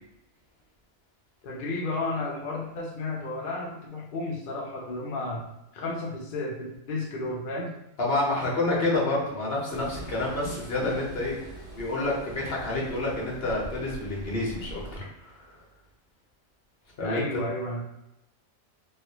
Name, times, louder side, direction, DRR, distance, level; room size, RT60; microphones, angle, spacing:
voice 1, 1.4-5.5 5.7-7.7 17.0-17.8, left 2 dB, 70° left, -1 dB, 0.5 m, -32 dB
voice 2, 8.0-11.3 11.7-15.3 17.0-17.2, left 2 dB, 50° left, -4 dB, 1.0 m, -28 dB
Train, 9.7-15.0, right 1 dB, 15° left, 0.9 m, -42 dB
3.1 x 2.4 x 2.9 m, 0.88 s
omnidirectional pair, 1.5 m